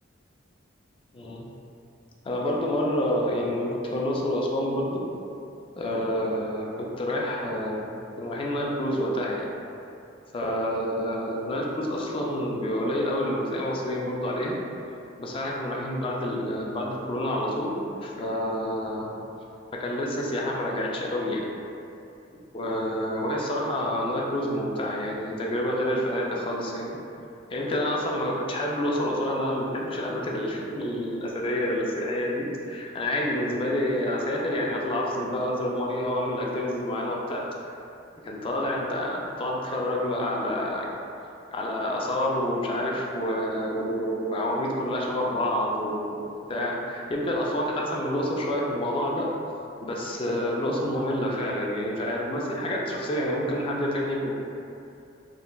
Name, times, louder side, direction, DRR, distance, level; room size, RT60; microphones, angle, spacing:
voice 1, 1.1-1.4 2.2-5.0 5.8-9.5 10.3-14.6 15.2-19.1 19.7-21.5 22.5-27.0 27.5-37.8 38.2-40.9 41.5-49.3 49.8-54.3, left 1 dB, 30° left, -3 dB, 0.3 m, -28 dB
3.6 x 2.1 x 2.2 m, 2.7 s
head